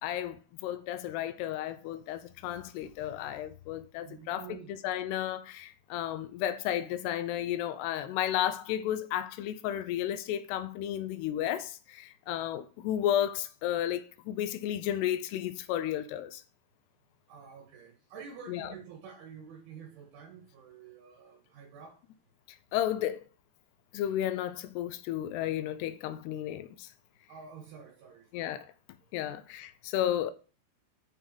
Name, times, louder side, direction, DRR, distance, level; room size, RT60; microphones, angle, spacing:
voice 1, 0.0-16.4 18.5-18.7 22.7-23.2 23.9-26.9 28.3-28.7 29.1-30.3, left 11 dB, 85° left, 2.4 m, -33 dB
voice 2, 4.0-4.7 17.3-22.0 27.3-28.5 29.2-29.3, right 6 dB, 75° right, 4.2 m, -49 dB
8.4 x 5.5 x 7.7 m
omnidirectional pair, 5.7 m